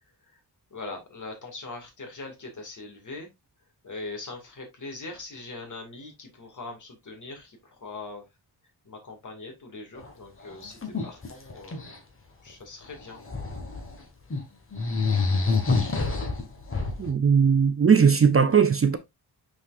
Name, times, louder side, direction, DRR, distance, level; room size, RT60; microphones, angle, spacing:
voice 1, 0.7-3.3 3.8-8.2 8.8-11.9 12.4-13.3, left 3 dB, 50° left, 2.5 m, -41 dB
sound 1, 10.0-10.1 10.4-12.0 12.9-14.0 14.3-14.4 14.7-17.1, left 4 dB, 35° left, 1.7 m, -27 dB
voice 2, 17.0-19.0, right 6 dB, 35° right, 0.6 m, -19 dB
6.3 x 6.1 x 2.6 m
wide cardioid pair, 155°, 39 cm